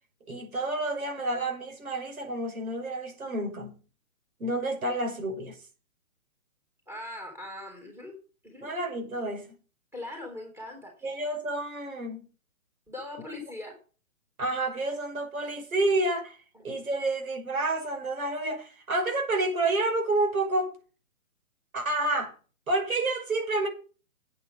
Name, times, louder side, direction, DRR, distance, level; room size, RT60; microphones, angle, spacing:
voice 1, 0.3-3.8 4.4-5.6 8.6-9.6 11.0-12.3 14.4-16.4 16.6-20.7 21.7-22.3 22.7-23.7, right 2 dB, 85° right, 5.6 m, -29 dB
voice 2, 6.9-8.2 8.4-8.7 9.9-11.2 12.9-13.8 16.5-16.6, left 1 dB, 5° right, 3.7 m, -41 dB
9.0 x 8.5 x 7.1 m
hypercardioid pair, 160°, 41 cm